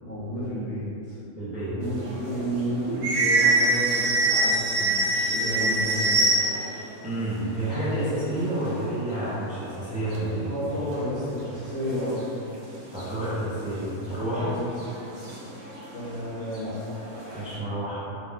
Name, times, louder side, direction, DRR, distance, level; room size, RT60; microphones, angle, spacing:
voice 1, 0.0-1.2 1.7-6.5 10.2-12.2 14.3-14.7 15.9-16.7, equal, 55° left, -13 dB, 1.2 m, -32 dB
voice 2, 1.4-1.8 7.0-10.5 12.9-14.5 17.3-18.1, right 1 dB, 10° right, -11 dB, 0.6 m, -29 dB
sound 1, 1.8-6.8 7.1-7.2 7.4-8.8 9.3-9.4 9.6-10.2 10.9-11.0 11.6-12.5 13.0-13.1 14.2-14.3 14.8-16.2 16.5-17.6, right 2 dB, 50° right, 0.7 m, -25 dB
4.6 x 2.5 x 3.6 m, 2.9 s
omnidirectional pair, 1.5 m